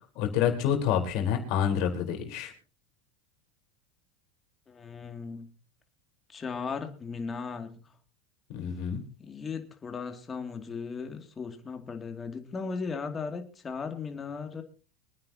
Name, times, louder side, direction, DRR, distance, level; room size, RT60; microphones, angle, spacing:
voice 1, 0.2-2.5 8.5-9.0, left 9 dB, 60° left, 3 dB, 4.2 m, -27 dB
voice 2, 4.7-5.5 6.3-7.9 9.2-14.6, left 5 dB, 25° left, 5 dB, 2.5 m, -37 dB
25.5 x 9.6 x 2.9 m, 0.36 s
supercardioid pair, 110°, 0 cm